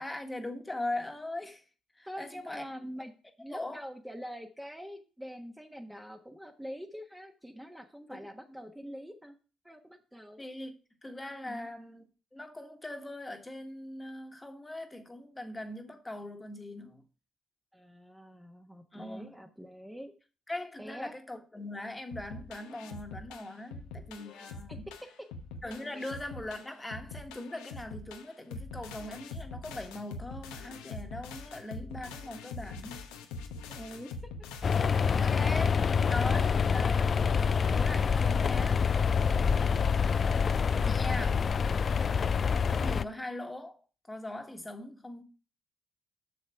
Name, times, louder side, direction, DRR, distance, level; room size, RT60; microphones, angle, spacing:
voice 1, 0.0-1.6 2.0-2.6 3.5-3.8 8.1-8.6 10.4-10.8 11.0-12.0 12.3-17.0 18.9-19.4 20.5-24.9 25.6-33.0 35.2-38.8 40.7-41.4 42.7-43.8 44.1-45.2, left 1 dB, 20° left, 1.5 m, -40 dB
voice 2, 2.0-3.1 3.4-9.3 9.6-10.4 11.4-11.7 17.7-20.1 20.8-21.1 24.7-24.8 25.9-26.0 33.7-34.1 34.8-35.5 40.8-41.4 42.0-42.4, equal, 5° right, 1.3 m, -45 dB
sound 1, 22.1-35.3, left 4 dB, 85° left, 0.9 m, -44 dB
sound 2, 34.6-43.0, left 6 dB, 45° left, 0.4 m, -26 dB
6.8 x 6.4 x 4.6 m
hypercardioid pair, 50°, 0 cm